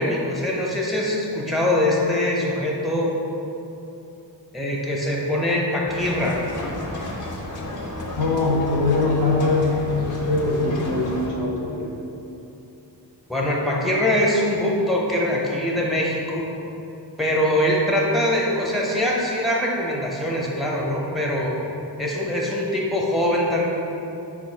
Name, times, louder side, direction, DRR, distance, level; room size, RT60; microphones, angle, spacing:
voice 1, 0.0-3.1 4.5-6.4 13.3-16.5 17.2-21.5 22.0-23.7, left 1 dB, ahead, -3 dB, 0.7 m, -23 dB
sound 1, 5.9-11.3, left 1 dB, 45° left, 0.7 m, -32 dB
voice 2, 8.2-11.9, left 2 dB, 75° left, -2 dB, 0.8 m, -22 dB
4.5 x 2.4 x 4.4 m, 2.8 s
cardioid pair, 45°, 44 cm